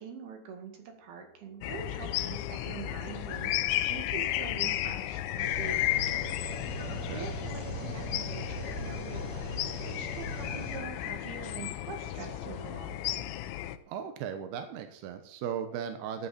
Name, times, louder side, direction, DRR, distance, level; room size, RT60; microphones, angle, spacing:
voice 1, 0.0-6.0 7.1-13.0, right 6 dB, 60° right, 5 dB, 3.5 m, -44 dB
sound 1, 0.8-13.7, left 1 dB, 45° left, 3.5 m, -55 dB
sound 2, 1.6-13.8, left 14 dB, 80° left, 3.0 m, -34 dB
sound 3, 5.4-10.8, equal, 25° right, 4.9 m, -39 dB
voice 2, 6.7-7.3 13.9-16.3, right 8 dB, 75° right, 7 dB, 2.4 m, -37 dB
13.0 x 12.0 x 4.3 m, 0.68 s
omnidirectional pair, 5.8 m